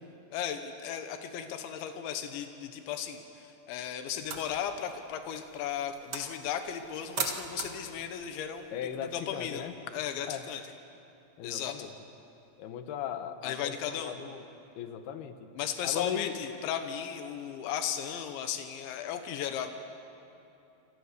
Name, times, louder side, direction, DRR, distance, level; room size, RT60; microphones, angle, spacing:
voice 1, 0.3-8.7 9.1-10.6 11.4-11.9 13.4-14.2 15.6-19.7, left 9 dB, 90° left, 7 dB, 3.5 m, -36 dB
sound 1, 4.2-9.7, right 5 dB, 50° right, 1.5 m, -42 dB
voice 2, 8.7-9.7 10.3-10.5 11.4-11.9 12.6-14.4 14.8-15.5 15.8-16.4, left 9 dB, 70° left, 8 dB, 2.8 m, -37 dB
28.5 x 25.5 x 6.7 m, 2.8 s
omnidirectional pair, 5.1 m